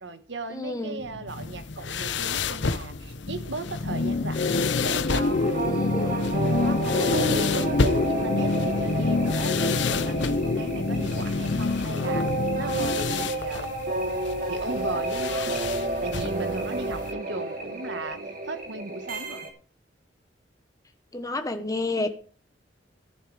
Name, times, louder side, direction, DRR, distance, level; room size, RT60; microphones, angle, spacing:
voice 1, 0.0-6.4 6.6-13.8 14.1-15.5 16.0-19.5, right 2 dB, 75° right, 10 dB, 1.5 m, -37 dB
voice 2, 0.5-1.0 5.6-6.2 21.1-22.1, left 2 dB, 20° left, 7 dB, 1.1 m, -30 dB
sound 1, 1.0-13.3, left 3 dB, 50° left, 0.5 m, -27 dB
sound 2, 1.3-17.1, left 5 dB, 80° left, 0.9 m, -33 dB
sound 3, 5.1-19.5, right 2 dB, 50° right, 2.9 m, -31 dB
14.5 x 11.0 x 3.4 m, 0.39 s
head